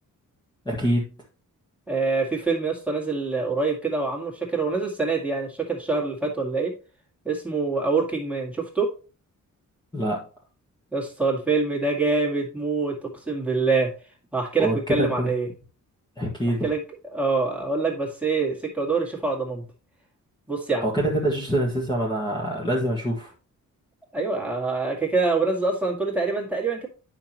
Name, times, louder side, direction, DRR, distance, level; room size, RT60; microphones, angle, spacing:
voice 1, 0.6-1.1 9.9-10.2 14.6-15.3 16.2-16.7 20.8-23.3, right 1 dB, 15° left, -3 dB, 1.5 m, -25 dB
voice 2, 1.9-6.7 7.2-8.9 10.9-13.9 14.3-15.5 16.6-16.8 17.1-19.6 20.5-20.9 24.1-26.9, right 3 dB, 5° right, -2 dB, 2.1 m, -25 dB
9.8 x 5.8 x 2.9 m, 0.33 s
wide cardioid pair, 165°, 33 cm